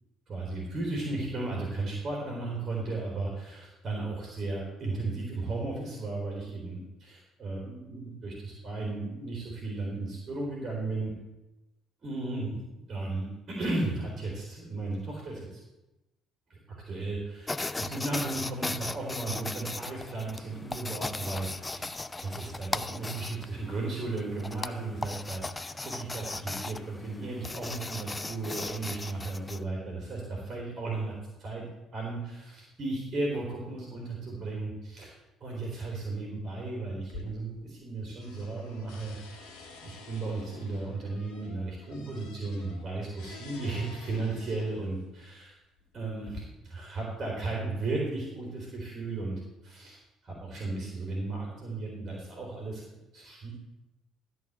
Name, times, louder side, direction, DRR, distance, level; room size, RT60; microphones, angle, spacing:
voice 1, 0.3-11.1 12.0-12.6 12.9-15.4 16.5-16.6 16.9-31.1 31.4-31.6 31.9-35.1 35.4-39.2 39.8-45.5 45.9-50.0 50.2-52.9 53.1-53.5, right 2 dB, 40° right, -3 dB, 3.5 m, -35 dB
sound 1, 17.5-29.6, left 3 dB, 20° left, 0.5 m, -37 dB
sound 2, 37.0-37.9 38.2-45.0 45.8-46.4, left 3 dB, 65° left, 1.6 m, -49 dB
13.0 x 4.4 x 7.9 m, 1.0 s
figure-of-eight pair, 50°, 0 cm